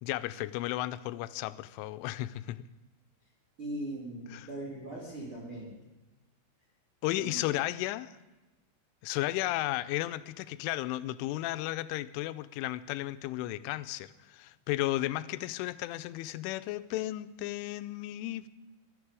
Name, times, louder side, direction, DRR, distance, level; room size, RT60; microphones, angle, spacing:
voice 1, 0.0-2.7 4.3-4.5 7.0-8.2 9.0-18.5, left 16 dB, 85° left, 13 dB, 3.0 m, -34 dB
voice 2, 3.6-5.9 7.2-7.5, right 1 dB, 35° right, -4 dB, 2.7 m, -40 dB
21.0 x 11.0 x 4.8 m, 1.1 s
omnidirectional pair, 5.7 m